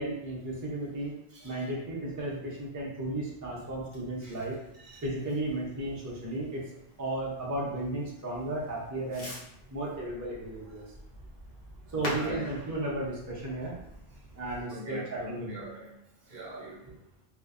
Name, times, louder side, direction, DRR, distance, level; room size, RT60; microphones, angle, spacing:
voice 1, 0.0-1.1 1.4-4.6 5.0-6.7 7.0-9.3 9.7-10.8 11.9-13.8 14.3-15.5, right 1 dB, 25° right, -5 dB, 0.4 m, -34 dB
voice 2, 1.3-1.7 4.2-4.4 4.7-5.0 12.0-12.5 14.7-15.9 16.3-17.0, equal, 65° right, -3 dB, 0.8 m, -42 dB
Fireworks, 3.2-14.6, equal, 60° left, 0.9 m, -47 dB
2.5 x 2.1 x 2.4 m, 0.79 s
omnidirectional pair, 1.1 m